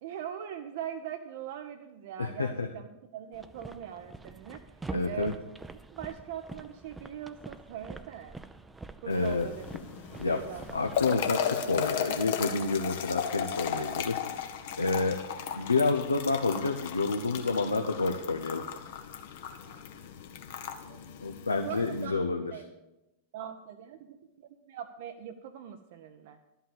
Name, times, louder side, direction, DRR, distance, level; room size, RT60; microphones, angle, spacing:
voice 1, 0.0-2.9 3.1-4.6 5.0-5.3 5.9-8.4 9.0-9.6 10.1-10.8 19.4-19.8 20.9-21.0 21.7-22.6 23.3-26.4, right 9 dB, 50° right, 6 dB, 0.6 m, -41 dB
voice 2, 2.2-2.7 4.9-5.3 9.0-9.5 10.2-10.4 10.7-15.2 15.5-18.6 21.2-22.5, left 3 dB, 80° left, 3 dB, 0.7 m, -29 dB
sound 1, 3.3-11.3, right 3 dB, 10° right, 0.5 m, -45 dB
sound 2, 9.1-22.1, left 8 dB, 55° left, 1.0 m, -36 dB
12.0 x 5.6 x 8.6 m, 0.95 s
figure-of-eight pair, 90°, 0 cm